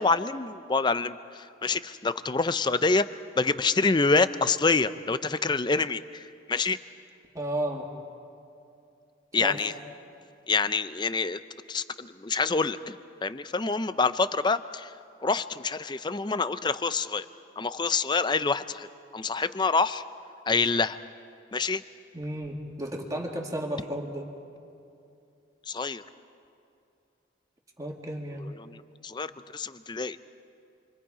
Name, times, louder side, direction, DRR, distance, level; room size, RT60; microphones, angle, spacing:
voice 1, 0.0-3.1 3.4-6.8 9.3-9.7 10.5-11.4 11.7-12.9 13.2-14.9 15.2-17.3 17.6-18.9 19.1-20.0 20.5-21.0 21.5-21.8 25.7-26.0 28.4-30.2, left 4 dB, 20° left, 13 dB, 0.5 m, -27 dB
voice 2, 7.3-7.9 9.4-9.6 22.1-24.3 27.8-28.5, right 1 dB, 15° right, 0 dB, 2.2 m, -33 dB
29.0 x 25.0 x 4.9 m, 2.6 s
head